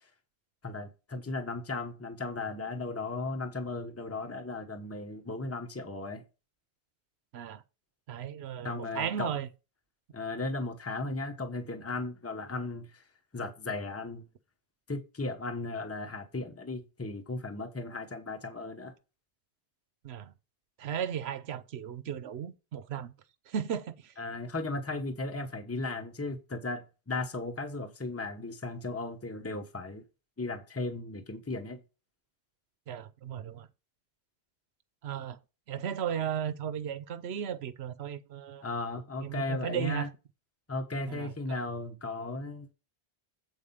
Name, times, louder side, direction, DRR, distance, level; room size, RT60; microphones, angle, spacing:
voice 1, 0.6-6.2 8.6-9.3 10.1-13.0 13.3-14.3 14.9-18.9 24.2-30.0 30.4-31.8 38.6-40.1 40.7-42.7, left 2 dB, 15° left, 1.0 m, -36 dB
voice 2, 8.1-9.5 20.0-20.3 20.8-23.1 23.5-24.1 32.9-33.7 35.0-35.4 35.7-38.6 39.2-40.1 41.1-41.6, right 8 dB, 90° right, 1.0 m, -35 dB
8.1 x 4.9 x 5.5 m
omnidirectional pair, 1.0 m